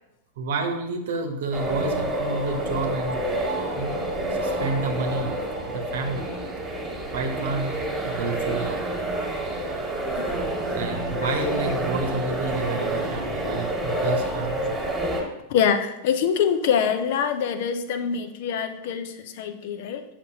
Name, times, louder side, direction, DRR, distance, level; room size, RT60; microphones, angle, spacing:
voice 1, 0.4-3.2 3.8-4.0 4.4-5.3 5.7-6.3 7.1-8.7 10.7-14.7, right 3 dB, 55° right, 5 dB, 0.9 m, -29 dB
sound 1, 1.5-15.2, right 1 dB, 10° right, 1.7 m, -28 dB
voice 2, 15.5-20.1, left 7 dB, 50° left, 9 dB, 0.5 m, -25 dB
8.1 x 5.8 x 2.8 m, 0.90 s
figure-of-eight pair, 90°, 0 cm